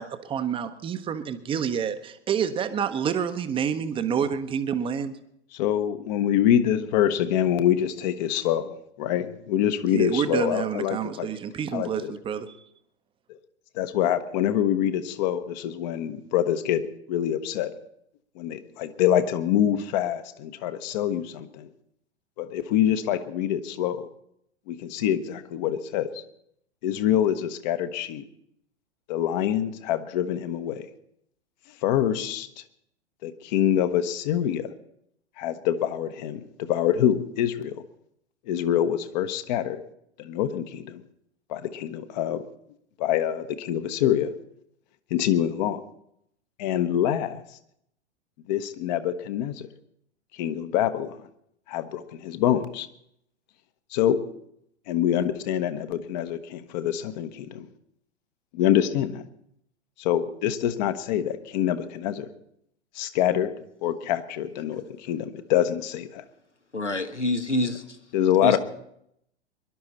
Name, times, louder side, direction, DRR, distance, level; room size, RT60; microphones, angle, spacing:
voice 1, 0.0-5.2 9.9-12.6, right 7 dB, 15° right, 10 dB, 0.8 m, -28 dB
voice 2, 5.5-11.3 11.7-12.1 13.3-13.4 13.7-17.7 18.4-21.7 22.4-24.1 24.7-26.2 26.8-28.2 29.1-30.8 31.8-32.5 33.2-34.7 35.4-37.7 38.5-39.8 40.2-41.0 41.5-42.5 43.0-44.3 45.1-45.8 46.6-47.4 48.5-49.6 50.3-51.2 51.7-52.9 53.9-54.2 54.9-57.7 58.5-59.2 60.0-62.3 62.9-63.5 63.8-66.2 68.1-68.6, left 10 dB, 40° left, 10 dB, 1.0 m, -25 dB
voice 3, 66.7-67.8 68.4-68.6, left 1 dB, 90° left, 8 dB, 1.3 m, -26 dB
22.5 x 11.5 x 4.2 m, 0.75 s
figure-of-eight pair, 100°, 34 cm